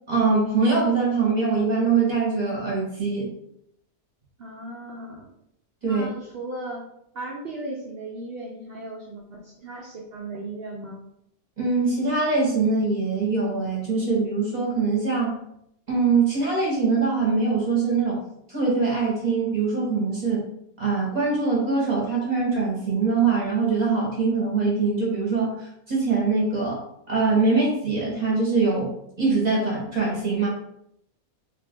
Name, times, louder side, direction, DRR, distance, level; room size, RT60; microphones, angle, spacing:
voice 1, 0.1-3.3 5.8-6.1 11.6-15.4 15.9-18.2 18.5-20.5 20.8-30.5, right 4 dB, 35° right, -4 dB, 0.9 m, -23 dB
voice 2, 4.4-5.3 5.8-6.9 7.1-11.0, right 2 dB, 60° right, -2 dB, 0.6 m, -36 dB
3.2 x 2.5 x 3.5 m, 0.75 s
omnidirectional pair, 1.6 m